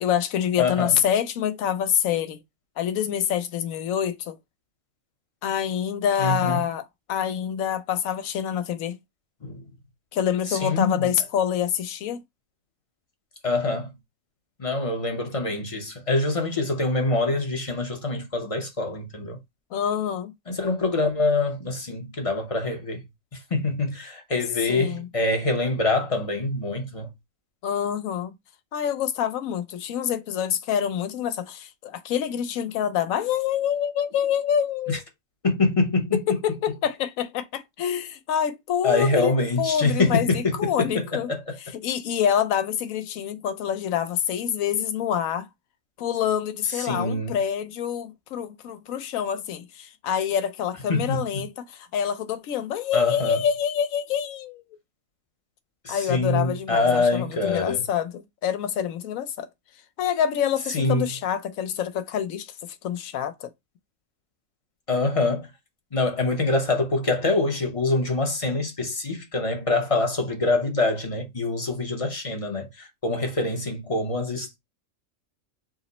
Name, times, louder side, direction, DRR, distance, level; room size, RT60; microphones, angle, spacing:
voice 1, 0.0-2.4 2.8-4.4 5.4-9.0 10.1-12.2 19.7-20.3 24.7-25.1 27.6-28.3 28.7-35.0 36.1-41.3 41.7-45.5 46.0-54.6 55.9-59.5 60.0-62.5 62.8-63.5, left 9 dB, 75° left, 1.0 m, -26 dB
voice 2, 0.6-1.0 6.2-6.6 9.4-9.7 10.5-11.1 13.4-13.9 14.6-19.4 20.5-23.0 23.3-27.1 34.9-35.0 35.4-36.4 38.8-41.6 46.6-47.4 50.9-51.5 52.9-53.4 55.8-57.9 60.7-61.1 64.9-65.5 65.9-74.6, left 2 dB, 30° left, 0.6 m, -25 dB
4.9 x 2.1 x 3.9 m
omnidirectional pair, 1.5 m